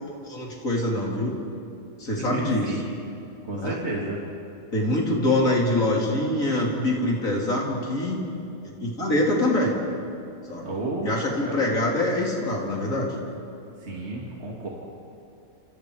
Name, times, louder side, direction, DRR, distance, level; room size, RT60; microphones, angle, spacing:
voice 1, 0.2-1.4 2.0-2.7 3.5-3.8 4.7-8.2 8.6-9.8 10.5-10.7 11.0-13.1, left 1 dB, 45° left, -2 dB, 4.4 m, -24 dB
voice 2, 2.2-2.9 3.5-4.2 10.6-11.1 11.4-11.7 13.8-14.7, right 2 dB, 35° right, -3 dB, 2.9 m, -31 dB
29.5 x 28.0 x 5.1 m, 2.7 s
omnidirectional pair, 1.9 m